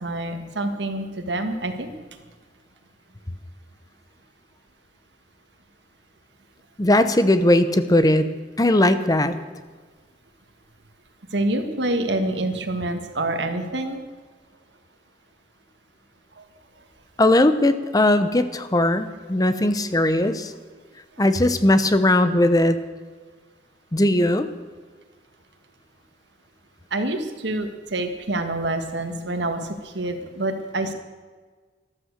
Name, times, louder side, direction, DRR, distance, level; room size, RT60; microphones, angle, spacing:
voice 1, 0.0-1.9 11.3-14.0 16.4-16.5 20.2-20.3 21.2-21.3 26.9-30.9, right 2 dB, 85° right, 7 dB, 1.7 m, -27 dB
voice 2, 6.8-8.2 8.6-9.3 17.2-20.5 21.2-22.8 23.9-24.5, left 1 dB, 20° left, 11 dB, 0.8 m, -19 dB
13.5 x 13.0 x 6.7 m, 1.4 s
head